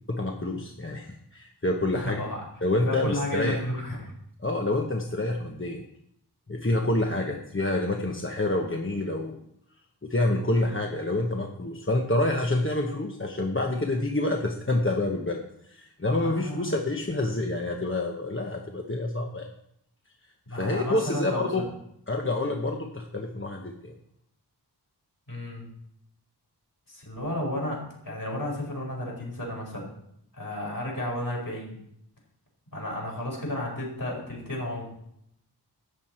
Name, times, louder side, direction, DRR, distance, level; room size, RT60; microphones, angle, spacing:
voice 1, 0.1-2.2 2.6-3.6 4.4-5.8 6.5-9.4 10.0-19.5 20.5-21.7 22.1-23.9, left 2 dB, 30° left, 2 dB, 1.1 m, -27 dB
voice 2, 1.9-2.4 2.8-4.1 16.2-16.7 20.5-21.5 25.3-25.7 26.9-27.8 28.0-30.0 30.3-31.8 32.7-34.8, left 1 dB, 55° left, -2 dB, 5.0 m, -32 dB
13.5 x 8.1 x 4.5 m, 0.74 s
wide cardioid pair, 50°, 41 cm